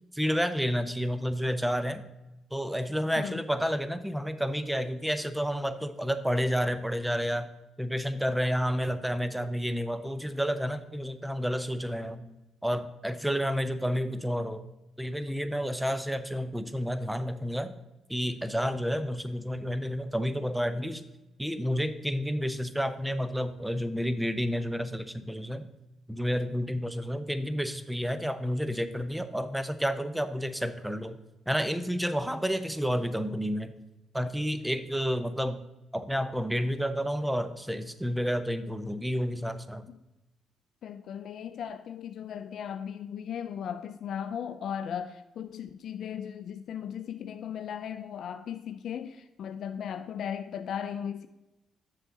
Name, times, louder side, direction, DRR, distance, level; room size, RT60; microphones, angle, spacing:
voice 1, 0.1-2.0 2.5-7.5 7.8-12.2 12.6-14.6 15.0-17.7 18.1-21.0 21.4-25.7 26.1-31.2 31.5-33.7 34.1-35.6 35.9-39.9, equal, 5° right, 0.6 m, -30 dB
voice 2, 40.8-51.3, left 8 dB, 70° left, 0.3 m, -37 dB
7.5 x 6.6 x 3.7 m
cardioid pair, 90°, 0 cm